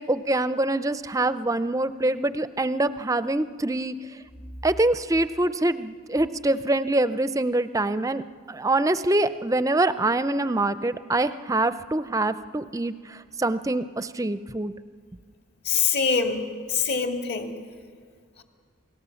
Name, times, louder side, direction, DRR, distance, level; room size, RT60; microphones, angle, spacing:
voice 1, 0.0-3.9 4.6-8.2 8.5-14.7, right 2 dB, 15° right, 13 dB, 0.5 m, -25 dB
voice 2, 15.7-16.4 16.7-17.5, left 6 dB, 50° left, 4 dB, 2.0 m, -24 dB
28.5 x 18.5 x 7.0 m, 2.1 s
head